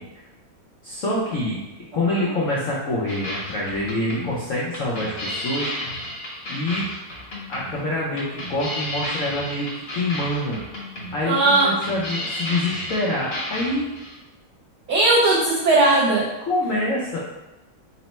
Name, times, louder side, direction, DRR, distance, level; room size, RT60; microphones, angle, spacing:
voice 1, 0.8-1.6 1.9-5.7 6.5-6.9 7.5-10.6 11.1-13.8 16.5-17.2, left 1 dB, 85° left, -5 dB, 0.7 m, -26 dB
sound 1, 3.1-14.2, left 1 dB, 45° left, 0.8 m, -32 dB
voice 2, 11.2-11.7 14.9-16.3, right 2 dB, 75° right, -3 dB, 0.9 m, -18 dB
4.1 x 2.1 x 4.1 m, 1.0 s
omnidirectional pair, 2.3 m